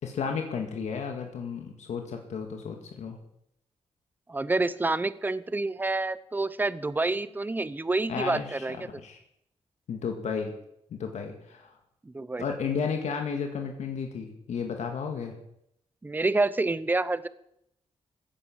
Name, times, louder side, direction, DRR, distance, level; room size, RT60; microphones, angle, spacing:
voice 1, 0.0-3.2 8.1-8.7 8.9-9.2 9.9-10.5 10.9-11.7 12.4-15.4, left 6 dB, 85° left, 4 dB, 2.0 m, -33 dB
voice 2, 4.3-8.8 12.1-12.4 16.0-17.3, right 2 dB, 15° right, 16 dB, 0.7 m, -28 dB
15.5 x 9.9 x 7.3 m, 0.78 s
wide cardioid pair, 120°, 12 cm